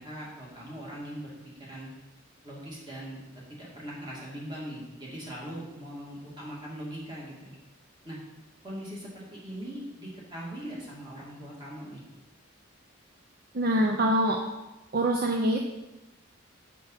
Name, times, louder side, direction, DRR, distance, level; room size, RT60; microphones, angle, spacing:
voice 1, 0.0-1.3 1.6-1.9 2.4-3.2 3.5-7.5 8.0-8.2 8.6-12.0, equal, 20° right, -5 dB, 2.3 m, -40 dB
voice 2, 13.5-14.4 14.9-15.6, right 1 dB, 45° right, 2 dB, 0.6 m, -24 dB
6.8 x 6.1 x 5.6 m, 1.0 s
head